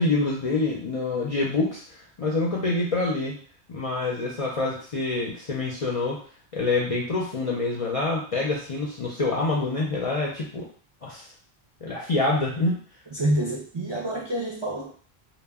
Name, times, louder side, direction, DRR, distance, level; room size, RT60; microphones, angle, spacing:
voice 1, 0.0-3.3 3.7-6.2 6.5-10.7 11.0-11.3 11.8-12.8, left 3 dB, 50° left, -4 dB, 0.4 m, -26 dB
voice 2, 13.1-14.9, right 1 dB, 40° right, -4 dB, 0.4 m, -27 dB
2.1 x 2.0 x 3.4 m, 0.44 s
omnidirectional pair, 1.1 m